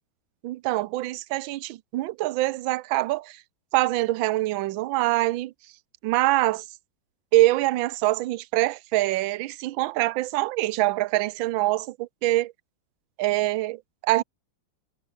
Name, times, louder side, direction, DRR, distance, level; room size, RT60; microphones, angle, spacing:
voice 1, 0.4-3.4 3.7-5.5 6.0-6.6 7.3-12.5 13.2-14.2, right 17 dB, 75° right, 1.4 m, -24 dB
omnidirectional pair, 2.2 m